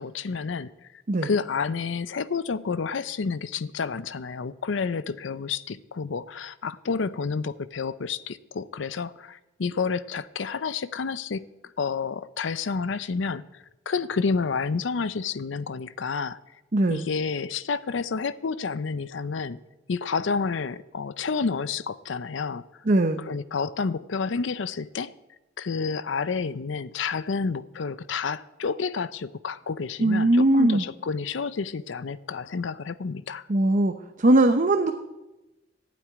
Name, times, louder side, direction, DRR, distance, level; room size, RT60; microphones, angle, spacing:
voice 1, 0.0-11.5 11.8-16.4 16.9-19.6 19.9-22.6 23.2-25.1 25.6-33.5, left 5 dB, 80° left, 0.5 m, -30 dB
voice 2, 16.7-17.0 22.9-23.2 30.0-30.8 33.5-34.9, right 1 dB, 45° right, 0.7 m, -20 dB
12.0 x 8.5 x 9.3 m
head